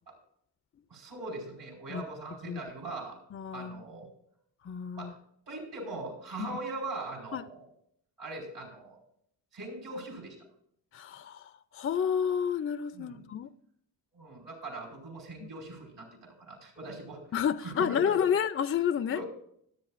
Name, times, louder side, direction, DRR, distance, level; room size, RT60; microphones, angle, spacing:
voice 1, 0.9-3.2 3.5-4.1 4.9-5.1 5.5-7.6 8.2-9.0 9.5-10.4 12.9-13.2 14.1-17.2 17.6-18.2 19.1-19.2, right 2 dB, 70° right, 5.0 m, -41 dB
voice 2, 3.3-3.8 4.6-5.1 6.4-6.6 7.3-7.4 10.9-13.5 15.4-15.5 17.3-19.2, left 8 dB, 30° left, 0.5 m, -30 dB
25.5 x 8.6 x 2.5 m
cardioid pair, 105°, 43 cm